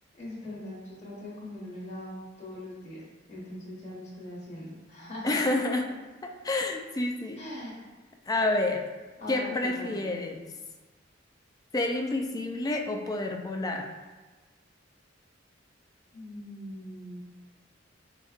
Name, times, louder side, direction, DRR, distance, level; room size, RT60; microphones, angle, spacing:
voice 1, 0.1-3.0 3.3-5.4 7.4-7.9 9.2-10.1 16.1-17.2, left 1 dB, 40° left, -7 dB, 1.0 m, -41 dB
voice 2, 5.2-5.9 6.2-7.4 8.3-8.9 9.3-10.4 11.7-13.9, left 2 dB, 20° left, 3 dB, 0.3 m, -29 dB
4.0 x 3.5 x 2.4 m, 1.3 s
head